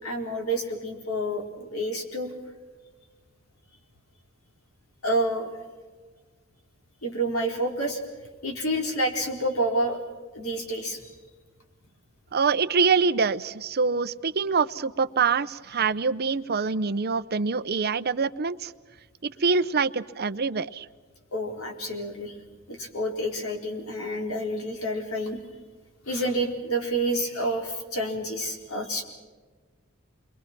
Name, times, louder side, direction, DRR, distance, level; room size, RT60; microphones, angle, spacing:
voice 1, 0.0-2.3 5.0-5.5 7.0-8.0 8.4-10.0 10.3-11.1 21.3-22.4 22.7-25.4 26.1-29.0, right 1 dB, 85° left, 2 dB, 4.3 m, -29 dB
voice 2, 12.3-18.7 19.2-20.9, right 5 dB, 50° right, 14 dB, 0.7 m, -25 dB
28.5 x 23.0 x 6.1 m, 1.4 s
head